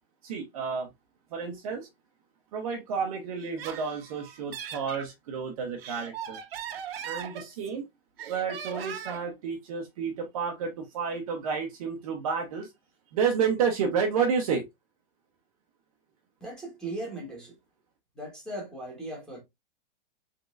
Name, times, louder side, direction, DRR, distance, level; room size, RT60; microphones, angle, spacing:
voice 1, 0.2-0.9 1.3-1.9 2.5-6.4 7.0-7.8 8.3-12.7 13.1-14.6, right 6 dB, 35° right, 0.7 m, -30 dB
Laughter, 3.4-5.1 5.6-7.8 8.2-9.3, right 8 dB, 80° right, 1.0 m, -39 dB
voice 2, 16.4-17.6 18.1-19.4, right 1 dB, ahead, 1.3 m, -38 dB
3.9 x 3.6 x 2.4 m
supercardioid pair, 175°, 30 cm